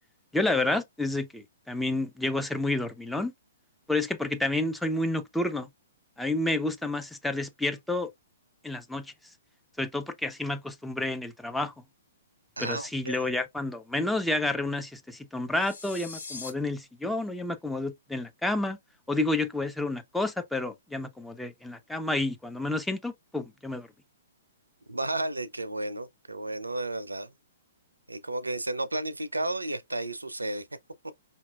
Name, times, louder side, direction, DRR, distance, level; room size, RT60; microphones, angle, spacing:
voice 1, 0.3-3.3 3.9-5.7 6.2-8.1 8.6-9.1 9.8-11.7 12.6-18.8 19.1-23.9, left 2 dB, 5° left, 0.4 m, -30 dB
voice 2, 12.6-13.3 24.9-27.3 28.1-30.7, right 2 dB, 80° right, 0.5 m, -33 dB
sound 1, 15.5-16.5, left 4 dB, 60° left, 1.5 m, -41 dB
5.3 x 2.9 x 2.3 m
figure-of-eight pair, 120°, 0 cm